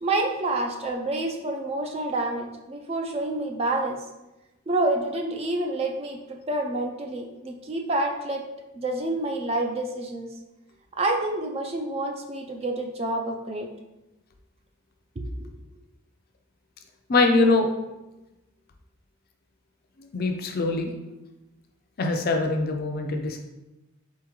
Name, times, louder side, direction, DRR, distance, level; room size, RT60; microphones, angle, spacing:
voice 1, 0.0-4.0 4.7-8.4 8.7-10.3 11.0-13.7 15.2-15.5, right 2 dB, 30° right, 3 dB, 0.4 m, -28 dB
voice 2, 17.1-17.7 20.1-20.9 22.0-23.4, left 3 dB, 45° left, 4 dB, 0.4 m, -23 dB
3.9 x 3.6 x 3.0 m, 1.0 s
head